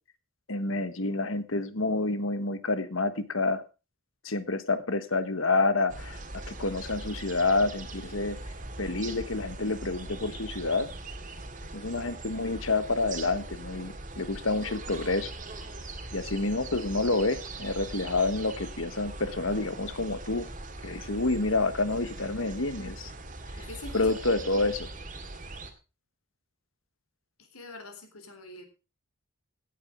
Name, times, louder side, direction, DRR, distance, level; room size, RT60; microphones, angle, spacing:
voice 1, 0.5-3.6 4.2-6.2 6.5-8.4 8.8-10.9 11.7-15.3 16.1-20.4 20.8-23.1 23.6-23.7 23.9-24.9, left 3 dB, 65° left, 12 dB, 1.5 m, -28 dB
sound 1, 5.9-25.7, right 2 dB, 35° right, 2.0 m, -41 dB
voice 2, 23.6-24.1 27.4-28.7, left 2 dB, 80° left, 6 dB, 3.8 m, -44 dB
16.0 x 8.7 x 5.0 m, 0.32 s
head